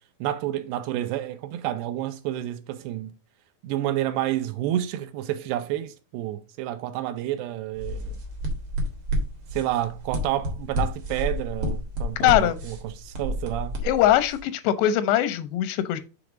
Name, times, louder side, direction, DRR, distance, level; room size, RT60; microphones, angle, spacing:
voice 1, 0.2-3.1 3.6-8.2 9.5-13.8, right 13 dB, 85° right, 2.6 m, -29 dB
sound 1, 7.7-14.4, equal, 55° right, 1.5 m, -30 dB
voice 2, 12.2-12.6 13.8-16.0, left 12 dB, 90° left, 2.8 m, -21 dB
7.0 x 3.3 x 4.9 m
omnidirectional pair, 4.8 m